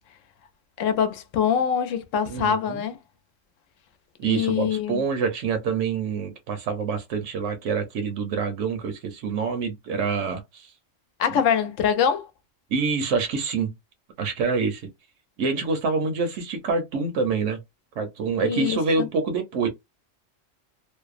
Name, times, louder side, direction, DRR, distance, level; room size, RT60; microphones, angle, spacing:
voice 1, 0.8-3.0 4.2-5.1 11.2-12.3 18.4-19.1, left 8 dB, 80° left, 0.9 m, -24 dB
voice 2, 2.3-2.8 4.2-10.7 11.3-11.4 12.7-13.7 14.2-14.8 15.4-17.6 18.0-19.7, right 4 dB, 75° right, 0.9 m, -26 dB
2.6 x 2.0 x 2.4 m
omnidirectional pair, 1.3 m